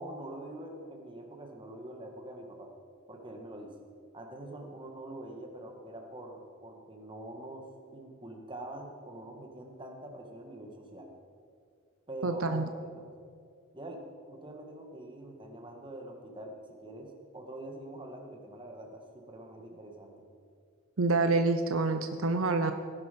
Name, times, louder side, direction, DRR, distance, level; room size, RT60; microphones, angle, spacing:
voice 1, 0.0-2.7 3.1-3.7 4.1-7.7 7.9-11.1 12.1-13.1 13.7-16.5 16.8-20.2, right 1 dB, 25° right, 2 dB, 1.8 m, -44 dB
voice 2, 12.2-12.7 21.0-22.7, right 3 dB, 70° right, 8 dB, 0.8 m, -27 dB
17.0 x 11.0 x 5.3 m, 2.2 s
head